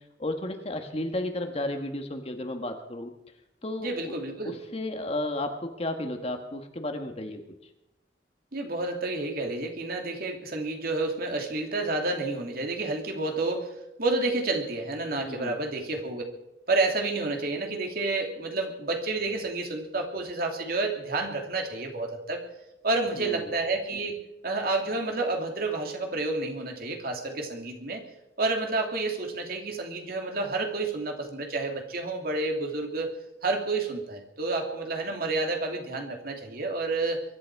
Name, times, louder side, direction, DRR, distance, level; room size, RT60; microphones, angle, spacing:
voice 1, 0.2-3.1 3.6-4.1 4.4-7.4 15.2-15.6 23.2-23.5, left 1 dB, 35° left, 5 dB, 1.7 m, -33 dB
voice 2, 3.8-4.6 8.5-16.2 16.7-22.4 22.8-28.0 28.4-33.1 33.4-37.2, right 3 dB, 55° right, 2 dB, 2.8 m, -30 dB
23.0 x 12.0 x 4.8 m, 0.87 s
head